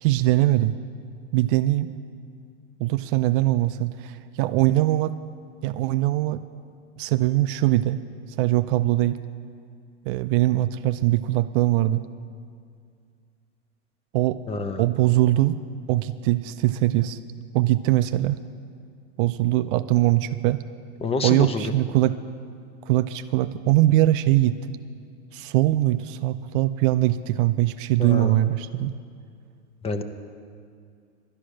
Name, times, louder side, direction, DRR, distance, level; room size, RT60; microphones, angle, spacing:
voice 1, 0.0-0.8 1.3-1.9 2.8-5.1 5.6-6.4 7.0-8.0 8.4-9.2 10.1-12.0 14.1-14.4 14.8-15.6 15.9-17.2 17.5-18.4 19.2-20.6 21.2-22.2 22.9-24.6 25.3-28.9, right 15 dB, 50° right, 12 dB, 0.4 m, -21 dB
voice 2, 14.5-14.8 21.0-21.7 28.0-28.4 29.8-30.0, left 3 dB, 15° left, 9 dB, 0.7 m, -27 dB
12.0 x 9.8 x 6.4 m, 2.2 s
hypercardioid pair, 120°, 35 cm